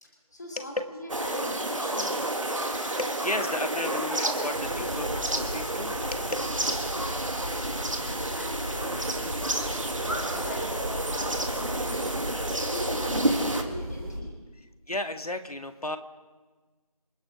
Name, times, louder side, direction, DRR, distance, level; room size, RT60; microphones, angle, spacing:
voice 1, 0.0-2.1 7.8-12.1 12.7-14.3, equal, 30° left, -2 dB, 2.8 m, -40 dB
sound 1, 1.1-13.6, right 1 dB, 55° right, 2.1 m, -30 dB
voice 2, 3.0-6.3 14.6-16.0, left 1 dB, 75° left, 7 dB, 1.7 m, -34 dB
sound 2, 4.5-14.2, equal, 40° right, 5.4 m, -38 dB
28.0 x 9.8 x 5.1 m, 1.3 s
figure-of-eight pair, 175°, 19 cm